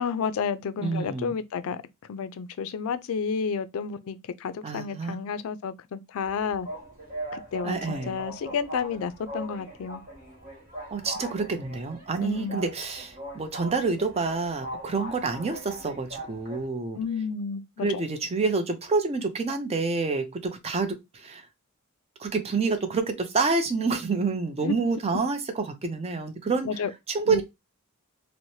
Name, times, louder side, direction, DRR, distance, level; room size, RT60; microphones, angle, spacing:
voice 1, 0.0-1.8 2.1-6.7 7.3-10.0 12.2-12.6 17.0-17.9 24.6-24.7 26.6-26.9 27.3-27.4, left 6 dB, 70° left, 0.3 m, -31 dB
voice 2, 0.8-1.4 4.6-5.2 7.6-8.2 10.9-17.0 17.8-21.4 22.2-26.8 27.1-27.4, right 4 dB, 30° right, 0.5 m, -28 dB
sound 1, 6.2-16.6, right 1 dB, 45° right, 1.4 m, -40 dB
3.1 x 2.1 x 2.7 m
head